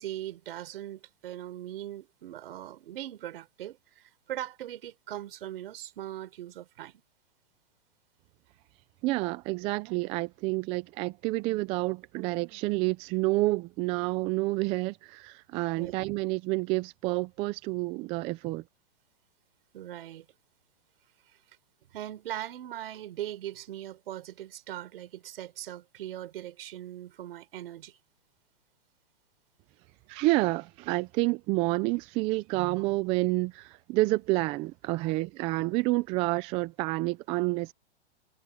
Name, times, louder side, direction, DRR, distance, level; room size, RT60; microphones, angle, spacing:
voice 1, 0.0-7.0 15.8-15.9 19.7-20.3 21.9-28.0 35.0-35.2, right 13 dB, 65° right, 4.6 m, -40 dB
voice 2, 9.0-18.6 30.1-37.7, right 21 dB, 20° right, 0.4 m, -29 dB
hypercardioid pair, 150°, 31 cm